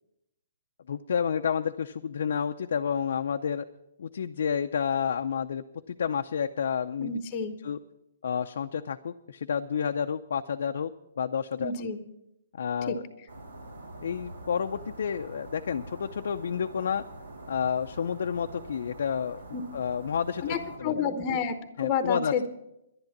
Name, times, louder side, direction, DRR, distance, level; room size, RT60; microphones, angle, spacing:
voice 1, 0.9-3.6 4.0-7.1 7.6-7.8 8.2-10.9 11.2-11.9 12.5-13.0 14.0-17.0 17.5-21.0 21.8-22.5, left 7 dB, 65° left, 6 dB, 0.5 m, -30 dB
voice 2, 7.0-7.6 11.6-12.0 12.9-13.0 19.5-19.6 20.4-22.5, left 6 dB, 20° left, 9 dB, 0.8 m, -30 dB
sound 1, 13.3-20.8, right 1 dB, 90° right, 3.4 m, -45 dB
11.0 x 10.5 x 7.2 m, 0.87 s
hypercardioid pair, 165°, 0 cm